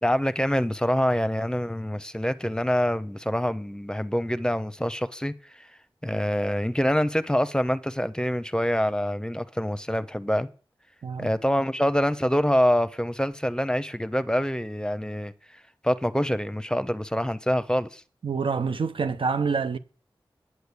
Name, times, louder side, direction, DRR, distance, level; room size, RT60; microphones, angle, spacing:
voice 1, 0.0-5.7 6.0-10.5 11.2-15.3 15.8-18.0, equal, 10° left, 0.8 m, -25 dB
voice 2, 18.2-19.8, right 5 dB, 75° right, 0.8 m, -26 dB
9.6 x 6.8 x 8.2 m
cardioid pair, 50°, 9 cm